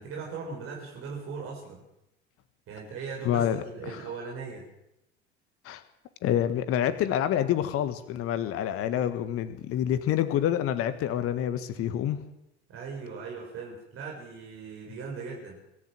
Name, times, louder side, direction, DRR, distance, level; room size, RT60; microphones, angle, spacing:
voice 1, 0.0-1.8 2.7-4.6 12.7-15.6, right 5 dB, 40° right, -2 dB, 6.6 m, -39 dB
voice 2, 3.2-3.6 3.8-4.0 5.6-5.8 6.2-12.2, left 10 dB, 45° left, 12 dB, 1.6 m, -27 dB
25.0 x 13.5 x 7.7 m, 0.85 s
figure-of-eight pair, 65°, 32 cm